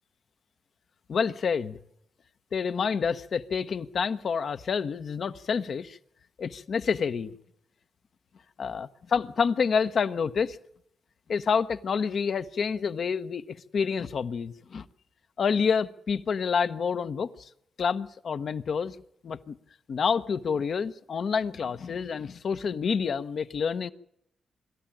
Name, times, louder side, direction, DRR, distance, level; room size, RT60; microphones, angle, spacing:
voice 1, 1.1-1.8 2.5-6.0 6.4-7.3 8.6-10.6 11.3-14.8 15.4-17.5 17.8-19.0 19.2-19.5 19.9-23.9, left 6 dB, 65° left, 0.9 m, -28 dB
25.5 x 13.0 x 8.9 m
supercardioid pair, 45°, 0 cm